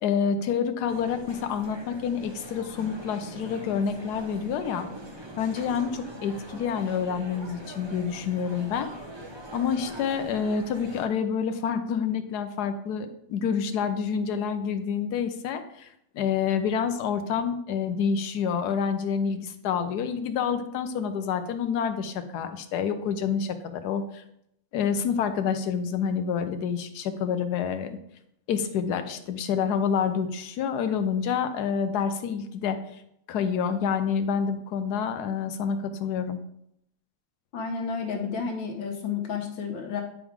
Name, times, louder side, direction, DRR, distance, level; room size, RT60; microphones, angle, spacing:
voice 1, 0.0-4.9 5.4-8.9 9.5-15.9 16.1-24.2 24.7-28.0 28.5-32.8 33.3-36.4, left 7 dB, 65° left, 9 dB, 1.1 m, -28 dB
sound 1, 0.9-11.1, equal, 25° right, 0.6 m, -42 dB
voice 2, 37.5-40.0, left 5 dB, 90° left, 2 dB, 1.7 m, -31 dB
9.9 x 4.8 x 3.6 m, 0.76 s
omnidirectional pair, 2.0 m